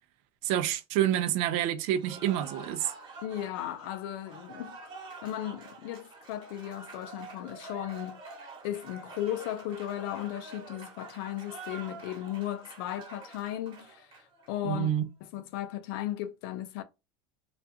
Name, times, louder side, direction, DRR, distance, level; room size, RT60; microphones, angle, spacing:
voice 1, 0.4-2.9 14.6-15.1, right 11 dB, 60° right, 0.4 m, -28 dB
Cheering / Applause, 1.9-14.5, right 3 dB, 40° right, 1.1 m, -47 dB
voice 2, 3.2-4.8 5.2-8.2 8.6-14.9 15.3-16.8, left 12 dB, 70° left, 0.5 m, -36 dB
2.4 x 2.2 x 2.6 m
supercardioid pair, 125°, 13 cm